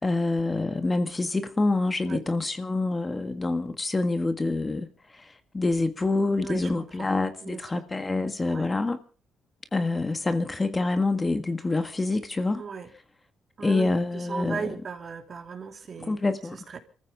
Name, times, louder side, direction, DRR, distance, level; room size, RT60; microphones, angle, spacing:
voice 1, 0.0-4.9 5.1-9.0 9.7-12.6 13.6-14.7 16.0-16.6, left 2 dB, 25° left, 1.6 m, -26 dB
voice 2, 6.3-6.7 7.0-7.1 7.4-7.8 8.5-8.7 12.6-12.9 13.6-16.2 16.5-16.8, right 5 dB, 45° right, 3.0 m, -37 dB
26.5 x 14.5 x 3.6 m
cardioid pair, 90°, 0 cm